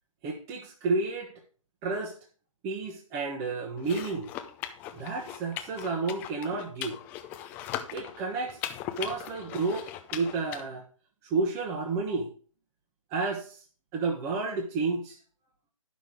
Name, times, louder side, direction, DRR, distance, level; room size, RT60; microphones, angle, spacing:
voice 1, 0.2-1.3 1.8-2.2 2.6-4.3 4.9-7.0 7.9-8.6 9.0-10.8 11.2-12.3 13.1-13.6 13.9-15.2, right 3 dB, 15° right, 0 dB, 1.0 m, -31 dB
sound 1, 3.8-10.6, left 11 dB, 10° left, 0.4 m, -39 dB
10.5 x 6.1 x 4.8 m, 0.40 s
figure-of-eight pair, 140°, 18 cm